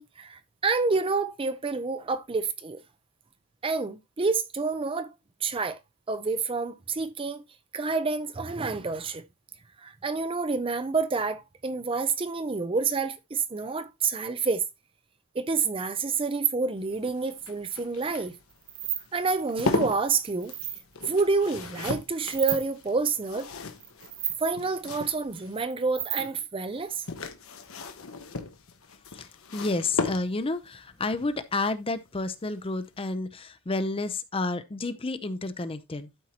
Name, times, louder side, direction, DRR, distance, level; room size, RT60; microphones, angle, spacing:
voice 1, 0.0-2.8 3.6-5.1 5.4-5.8 6.1-7.4 7.7-9.2 9.8-14.6 15.3-18.4 19.1-20.5 21.0-23.5 24.4-27.0, right 4 dB, 25° right, 0.5 m, -28 dB
sound 1, 16.8-25.6 26.7-30.7 32.3-32.6 32.9-33.0, left 3 dB, 70° left, 1.0 m, -36 dB
sound 2, 18.5-19.1 19.3-19.6 20.1-20.8 22.2-22.6 23.4-23.5 23.8-24.4 25.6-26.4, right 11 dB, 70° right, 1.1 m, -33 dB
voice 2, 29.5-36.1, left 3 dB, 25° left, 0.6 m, -30 dB
12.0 x 4.6 x 2.9 m
head